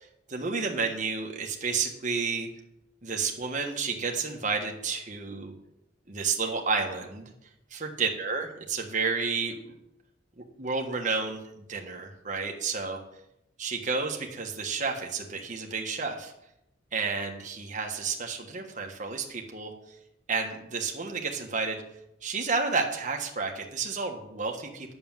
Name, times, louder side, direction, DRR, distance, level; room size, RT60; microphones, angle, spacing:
voice 1, 0.3-2.5 3.0-5.5 6.1-7.3 7.7-9.7 10.4-13.0 13.6-16.3 16.9-19.7 20.3-21.8 22.2-24.9, right 4 dB, 40° right, 1 dB, 1.4 m, -31 dB
9.5 x 6.9 x 7.4 m, 0.83 s
head